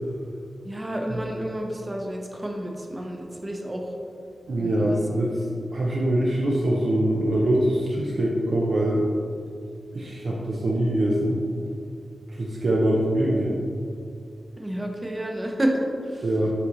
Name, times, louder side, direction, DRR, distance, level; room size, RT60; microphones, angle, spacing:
voice 1, 0.6-3.9 4.6-5.2 14.6-16.3, right 1 dB, 20° right, 1 dB, 0.7 m, -30 dB
voice 2, 4.5-5.4 5.7-9.1 9.9-11.4 12.4-13.6 16.2-16.5, right 1 dB, 60° right, -4 dB, 0.7 m, -23 dB
5.7 x 4.9 x 4.0 m, 2.4 s
wide cardioid pair, 125°, 0 cm